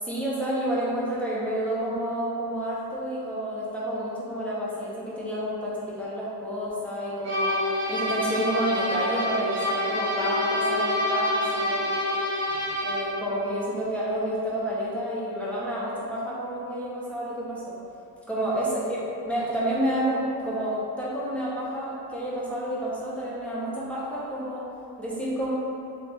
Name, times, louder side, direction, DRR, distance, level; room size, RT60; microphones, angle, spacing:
voice 1, 0.0-7.6 7.9-11.8 12.8-17.8 18.3-24.7 25.0-25.5, equal, 5° left, -8 dB, 0.6 m, -29 dB
sound 1, 7.2-13.2, left 1 dB, 35° right, 1.2 m, -27 dB
3.4 x 3.0 x 3.2 m, 2.7 s
cardioid pair, 135°, 43 cm